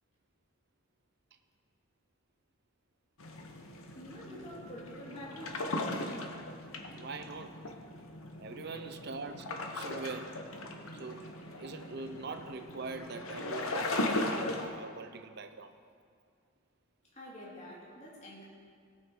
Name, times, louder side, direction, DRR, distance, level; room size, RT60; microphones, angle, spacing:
sound 1, 3.2-14.7, left 2 dB, 75° left, 1.0 m, -38 dB
voice 1, 4.0-5.8 17.1-18.4, equal, 30° left, -6 dB, 2.3 m, -47 dB
voice 2, 7.0-7.6 8.4-9.4 9.7-10.4 10.9-15.8, right 3 dB, 50° right, 8 dB, 0.6 m, -43 dB
17.5 x 6.3 x 4.6 m, 2.2 s
head